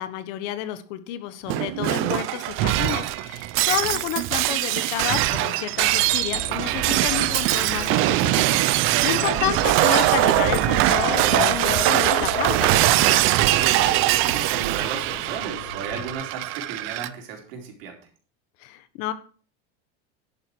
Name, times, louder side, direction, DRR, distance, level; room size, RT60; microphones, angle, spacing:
voice 1, 0.0-12.7 18.6-19.1, left 12 dB, 60° left, 12 dB, 1.4 m, -30 dB
Shatter, 1.5-17.1, right 16 dB, 45° right, 0.6 m, -22 dB
sound 1, 5.8-16.1, left 7 dB, 75° left, 3.0 m, -35 dB
voice 2, 8.8-9.4 13.4-18.0, right 6 dB, 75° right, 1 dB, 4.3 m, -34 dB
Human voice, 9.3-9.5 10.0-10.3 10.6-11.5 11.9-12.0 12.3-12.7 13.2-16.1, right 7 dB, 60° right, 3.0 m, -37 dB
11.0 x 8.9 x 4.7 m, 0.41 s
supercardioid pair, 155°, 29 cm